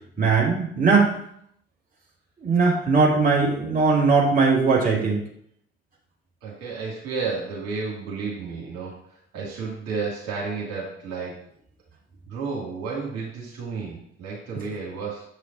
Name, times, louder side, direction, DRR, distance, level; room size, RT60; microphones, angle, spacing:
voice 1, 0.2-1.2 2.4-5.2, right 4 dB, 25° right, -4 dB, 2.4 m, -19 dB
voice 2, 6.4-9.0 9.3-11.4 12.3-15.3, right 4 dB, 55° right, -4 dB, 2.5 m, -32 dB
7.6 x 4.9 x 4.0 m, 0.67 s
figure-of-eight pair, 50°, 30 cm